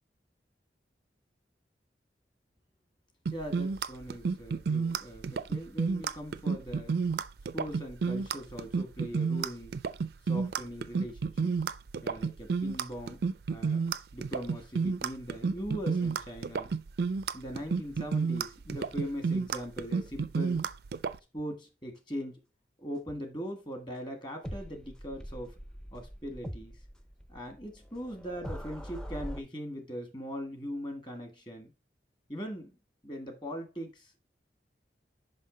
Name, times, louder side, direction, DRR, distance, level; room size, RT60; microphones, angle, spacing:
voice 1, 3.3-7.0 7.5-9.8 10.2-11.5 12.0-13.2 13.5-13.8 14.1-16.7 17.3-20.6 21.3-22.4 22.8-25.5 25.9-26.8 27.3-31.7 32.3-32.8 33.0-34.2, equal, 25° left, 1.4 m, -40 dB
sound 1, 3.3-21.2, right 5 dB, 60° right, 0.4 m, -30 dB
sound 2, 24.4-29.4, equal, 5° left, 0.4 m, -43 dB
5.6 x 5.5 x 3.8 m
head